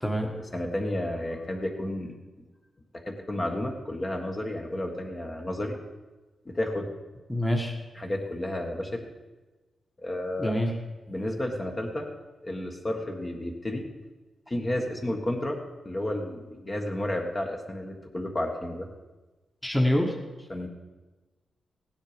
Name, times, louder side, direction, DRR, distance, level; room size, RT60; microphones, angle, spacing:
voice 1, 0.2-2.1 3.0-5.8 6.4-6.9 7.9-9.1 10.0-10.5 11.1-12.1 12.4-13.9 14.5-15.6 15.8-18.9 20.5-20.7, left 1 dB, 25° left, 2 dB, 1.5 m, -31 dB
voice 2, 7.3-7.8 10.4-10.7 19.6-20.1, equal, 5° left, 1 dB, 1.5 m, -25 dB
16.5 x 10.0 x 5.1 m, 1.2 s
wide cardioid pair, 125°, 0 cm